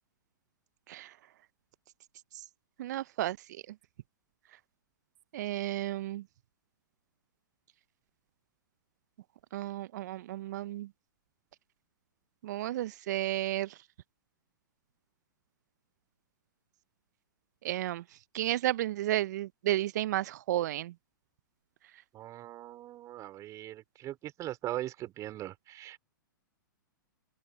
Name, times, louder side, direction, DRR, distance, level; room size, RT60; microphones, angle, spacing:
voice 1, 2.8-3.4 5.3-6.2 9.5-10.9 12.4-13.7 17.6-18.0 18.3-20.9, right 14 dB, 55° right, 1.0 m, -32 dB
voice 2, 22.1-26.0, right 14 dB, 30° right, 4.3 m, -40 dB
hypercardioid pair, 115°, 11 cm